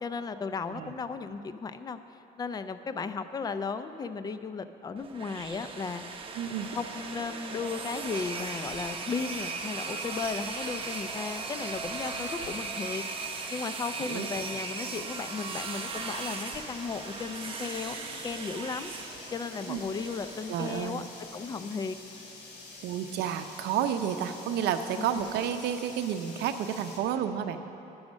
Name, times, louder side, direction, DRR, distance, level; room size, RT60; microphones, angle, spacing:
voice 1, 0.0-2.0 2.4-6.1 6.7-13.0 13.5-18.0 18.2-18.9 19.3-21.0 21.3-22.0 25.0-25.2, left 5 dB, 25° left, 11 dB, 0.4 m, -35 dB
sound 1, 5.0-20.9, right 4 dB, 30° right, 0.9 m, -38 dB
voice 2, 6.4-6.7 14.0-14.3 19.7-19.8 20.5-21.0 22.8-27.7, right 9 dB, 80° right, 8 dB, 0.6 m, -31 dB
sound 2, 9.4-27.0, left 3 dB, 80° left, 2.0 m, -48 dB
10.5 x 6.3 x 6.2 m, 2.9 s
cardioid pair, 110°, 17 cm